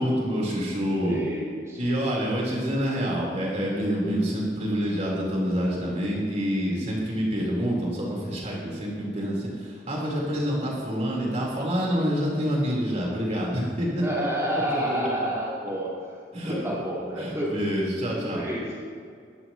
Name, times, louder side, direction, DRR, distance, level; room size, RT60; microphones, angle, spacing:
voice 1, 0.0-1.2 1.8-14.0 14.5-15.3 16.3-16.5 17.2-18.4, equal, 40° right, -4 dB, 4.0 m, -27 dB
voice 2, 1.0-2.0 14.0-16.1 16.4-17.5 18.1-18.8, equal, 15° right, -7 dB, 4.4 m, -30 dB
22.5 x 12.5 x 3.1 m, 2.2 s
head